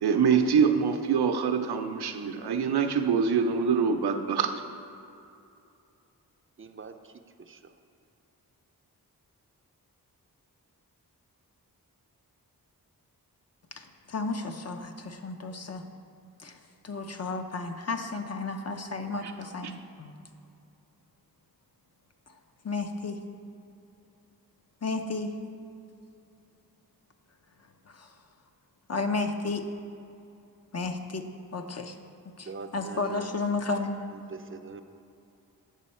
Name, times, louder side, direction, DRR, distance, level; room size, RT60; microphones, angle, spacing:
voice 1, 0.0-4.5 19.2-19.3, right 6 dB, 90° right, 6 dB, 0.6 m, -24 dB
voice 2, 6.6-7.1 7.4-7.7 32.4-33.3 34.1-34.8, right 4 dB, 35° right, 8 dB, 0.5 m, -43 dB
voice 3, 13.7-15.8 16.4-16.6 16.8-20.1 22.6-23.2 24.8-25.3 27.9-28.1 28.9-29.7 30.7-31.3 31.5-32.0 32.4-34.1, left 3 dB, 40° left, 6 dB, 0.7 m, -33 dB
8.3 x 6.2 x 4.3 m, 2.7 s
wide cardioid pair, 70°, 38 cm